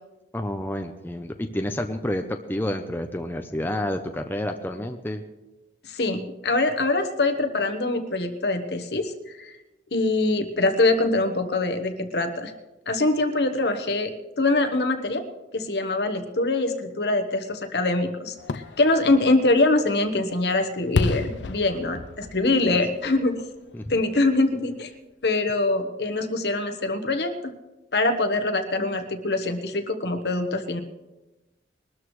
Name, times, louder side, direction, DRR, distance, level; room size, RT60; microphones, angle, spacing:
voice 1, 0.3-5.2 23.7-24.0, left 1 dB, 10° left, 5 dB, 0.6 m, -29 dB
voice 2, 5.9-9.1 9.4-9.5 9.9-12.5 12.9-15.2 15.5-23.4 23.9-24.9 25.2-27.5 27.9-30.8, left 2 dB, 65° left, 7 dB, 1.2 m, -24 dB
Fireworks, 18.4-24.2 24.6-24.7, left 3 dB, 80° left, 0.5 m, -32 dB
22.0 x 13.0 x 3.2 m, 1.1 s
head